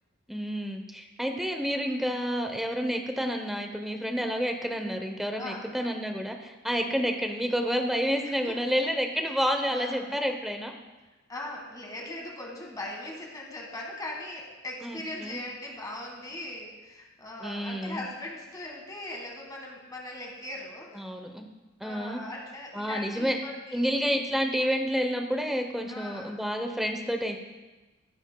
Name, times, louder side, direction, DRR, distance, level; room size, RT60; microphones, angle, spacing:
voice 1, 0.3-10.7 14.8-15.4 17.4-18.0 20.9-21.5 21.8-22.2 22.7-23.4 23.7-27.4, equal, ahead, 4 dB, 0.7 m, -29 dB
voice 2, 5.3-5.7 6.7-6.9 8.2-8.8 9.7-10.2 11.3-21.0 21.8-23.9 25.9-26.3, left 1 dB, 20° left, 0 dB, 1.5 m, -40 dB
15.5 x 7.0 x 2.2 m, 1.2 s
head